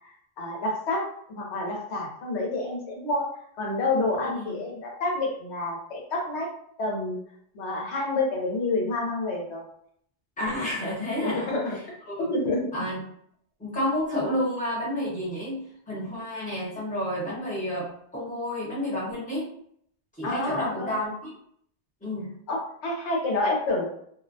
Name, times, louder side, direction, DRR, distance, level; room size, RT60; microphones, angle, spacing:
voice 1, 0.4-1.0 1.3-3.2 3.6-6.5 6.8-7.2 7.5-9.6 11.2-11.7 12.3-12.7 20.2-20.9 22.5-23.9, left 2 dB, 80° left, -1 dB, 1.0 m, -28 dB
voice 2, 4.2-4.5 10.4-12.3 12.7-13.0 13.6-19.4 20.1-21.3 22.0-22.3, left 1 dB, 10° left, -7 dB, 0.9 m, -30 dB
2.4 x 2.0 x 2.6 m, 0.66 s
omnidirectional pair, 1.1 m